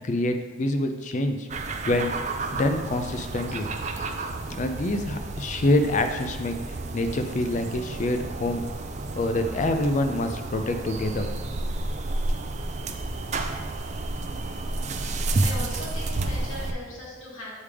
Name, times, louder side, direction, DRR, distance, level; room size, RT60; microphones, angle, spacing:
voice 1, 0.0-1.5 1.9-2.2 2.5-3.7 4.5-6.6 6.9-8.6 9.1-11.3 11.6-11.7, left 1 dB, 35° left, 6 dB, 0.5 m, -26 dB
sound 1, 1.5-16.7, right 2 dB, 35° right, 0.4 m, -31 dB
voice 2, 15.4-17.5, left 1 dB, 80° left, -5 dB, 1.9 m, -38 dB
7.3 x 3.4 x 4.8 m, 1.3 s
head